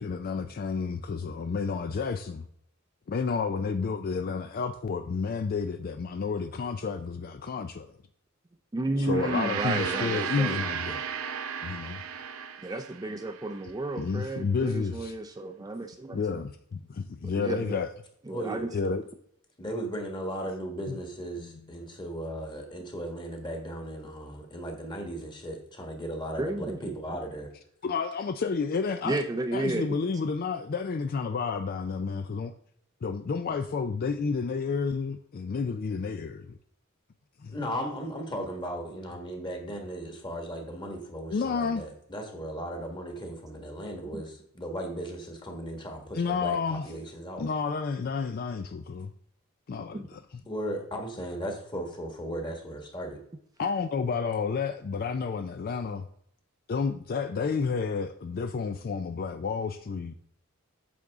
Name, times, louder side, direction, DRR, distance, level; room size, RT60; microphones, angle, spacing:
voice 1, 0.0-2.4 3.1-8.0 9.0-11.0 11.6-12.0 14.0-15.2 16.1-17.9 18.7-19.0 20.9-21.0 21.4-21.5 27.8-29.2 29.5-32.5 33.0-36.5 37.4-37.5 41.3-41.8 46.1-46.9 47.4-49.1 49.7-50.4 53.6-56.1 56.7-60.1, left 5 dB, 45° left, 0.4 m, -30 dB
voice 2, 8.7-10.6 12.6-16.4 17.2-17.8 18.3-18.7 26.4-26.8 29.1-30.0 44.1-44.2 49.9-50.1, right 2 dB, 20° right, 0.5 m, -32 dB
Gong, 9.0-13.6, right 7 dB, 90° right, 0.8 m, -34 dB
voice 3, 18.3-18.9 19.6-27.5 37.5-47.4 50.5-53.2, right 1 dB, 20° left, 1.6 m, -36 dB
8.6 x 6.7 x 3.6 m
head